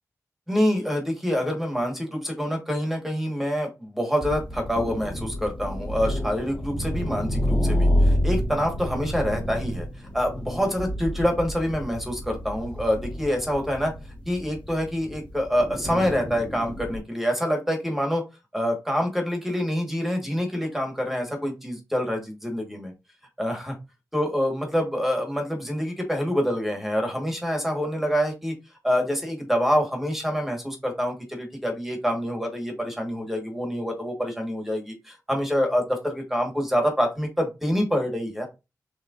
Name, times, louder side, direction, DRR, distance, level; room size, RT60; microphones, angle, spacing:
voice 1, 0.5-9.9 10.1-13.9 14.2-18.2 18.5-22.9 23.4-23.7 24.1-28.5 28.8-38.5, equal, 5° right, 3 dB, 1.4 m, -26 dB
sound 1, 4.2-17.0, equal, 20° left, 1.4 m, -28 dB
6.4 x 3.1 x 2.5 m, 0.25 s
wide cardioid pair, 175°, 6 cm